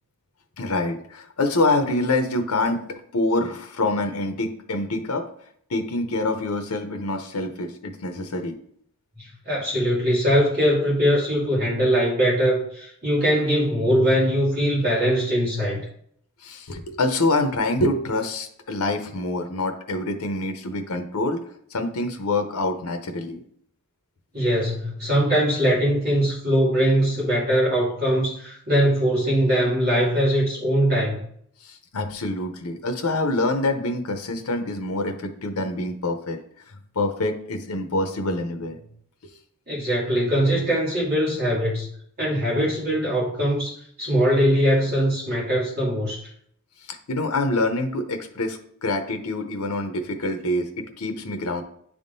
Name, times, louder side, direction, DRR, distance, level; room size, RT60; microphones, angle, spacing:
voice 1, 0.6-5.3 5.7-8.6 16.4-23.4 31.6-36.4 36.7-38.8 39.2-39.3 46.8-51.6, left 2 dB, 90° left, 6 dB, 0.7 m, -26 dB
voice 2, 9.2-15.9 24.3-31.2 39.7-41.9 42.2-46.2, equal, 45° right, -6 dB, 2.3 m, -21 dB
10.0 x 3.6 x 2.6 m, 0.66 s
head